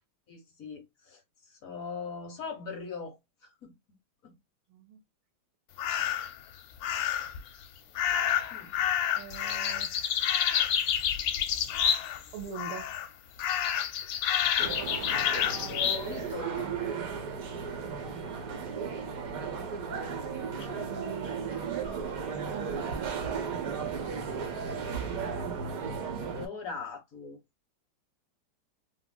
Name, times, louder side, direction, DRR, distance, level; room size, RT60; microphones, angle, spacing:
voice 1, 0.3-1.2 1.5-3.7 4.2-4.4 8.5-8.8 15.4-16.7 20.3-20.7 24.3-25.2 26.1-27.4, left 5 dB, 55° left, 1.0 m, -41 dB
voice 2, 4.7-5.0 6.0-6.1 9.1-10.1 12.3-13.0 17.2-17.4 20.8-22.1 22.5-23.2, right 7 dB, 80° right, 1.5 m, -43 dB
sound 1, 5.8-6.3 6.8-7.4 7.9-12.3 12.5-13.1 13.4-16.0, left 9 dB, 75° left, 1.2 m, -29 dB
sound 2, 14.6-26.5, right 6 dB, 60° right, 0.9 m, -35 dB
3.7 x 2.3 x 2.3 m
omnidirectional pair, 2.2 m